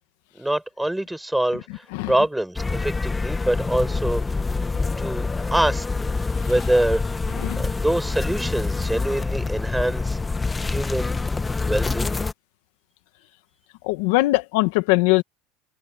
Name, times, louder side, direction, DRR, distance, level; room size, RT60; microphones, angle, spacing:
voice 1, 0.3-4.4 5.0-5.9 6.4-7.0 7.6-10.2 10.6-11.2 11.6-12.2, right 1 dB, 5° right, 5.8 m, -25 dB
sound 1, 2.6-12.3, left 3 dB, 10° left, 1.0 m, -26 dB
voice 2, 13.8-15.2, left 21 dB, 70° left, 1.6 m, -21 dB
open air
supercardioid pair, 145°, 0 cm